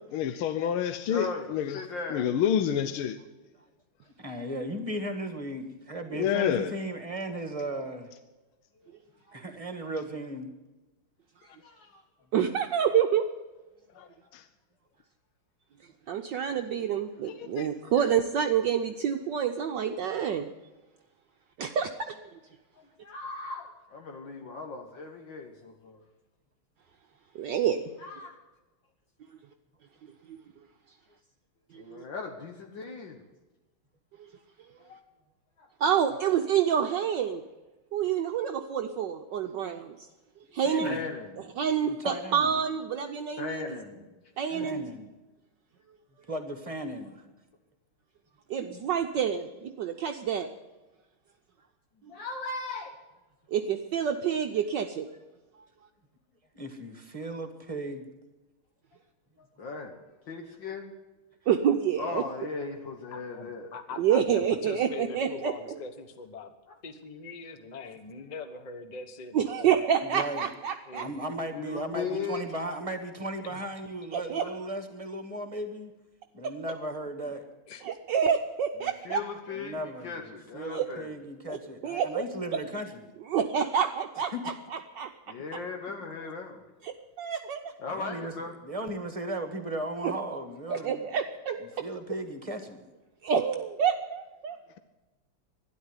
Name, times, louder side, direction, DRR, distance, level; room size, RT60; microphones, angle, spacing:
voice 1, 0.1-1.8 2.1-3.2 6.1-6.7 14.0-14.1 14.3-14.4 17.3-17.7, left 9 dB, 75° left, 10 dB, 1.6 m, -28 dB
voice 2, 1.1-2.3 8.8-8.9 9.3-9.4 11.4-12.0 22.8-26.0 28.0-28.4 31.8-33.2 34.8-35.0 35.6-35.7 40.8-41.5 43.4-44.1 44.5-44.8 52.1-52.9 59.4-60.0 60.3-60.9 62.0-63.7 71.5-72.4 74.3-74.5 78.8-81.1 85.3-86.6 87.8-88.5, left 4 dB, 60° left, 3 dB, 1.9 m, -38 dB
voice 3, 4.2-8.1 9.3-10.5 40.6-41.0 41.8-42.5 44.6-45.1 46.3-47.2 56.5-58.1 70.0-70.5 70.9-75.9 76.3-77.5 79.5-80.2 80.5-83.1 84.3-84.5 87.9-91.0 91.8-92.8, right 1 dB, 20° right, 8 dB, 1.4 m, -36 dB
voice 4, 12.3-13.3 16.1-20.5 21.6-22.2 27.3-27.8 30.3-30.4 31.7-32.0 35.8-37.4 37.9-40.1 40.5-41.0 41.6-43.6 44.4-44.8 48.5-50.5 53.5-55.1 61.5-62.2 64.0-65.5 69.3-71.0 74.1-74.4 77.8-79.2 80.7-80.9 81.5-81.6 81.8-82.2 83.3-85.1 86.8-87.7 90.0-90.1 90.7-91.6 93.2-94.6, right 8 dB, 65° right, 5 dB, 1.3 m, -28 dB
voice 5, 63.1-66.5 66.8-69.8 70.9-71.2 73.4-73.6 77.7-77.8, left 4 dB, 30° left, 9 dB, 0.9 m, -42 dB
12.5 x 11.0 x 9.7 m, 1.1 s
omnidirectional pair, 2.4 m